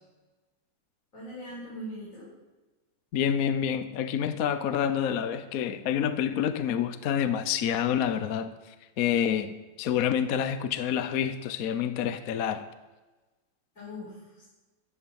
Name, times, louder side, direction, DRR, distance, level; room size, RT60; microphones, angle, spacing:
voice 1, 1.1-2.3 13.8-14.4, equal, 35° left, 5.3 m, -41 dB
voice 2, 3.1-8.5 9.0-12.6, left 9 dB, 60° left, 0.9 m, -28 dB
14.0 x 8.4 x 8.7 m
omnidirectional pair, 2.3 m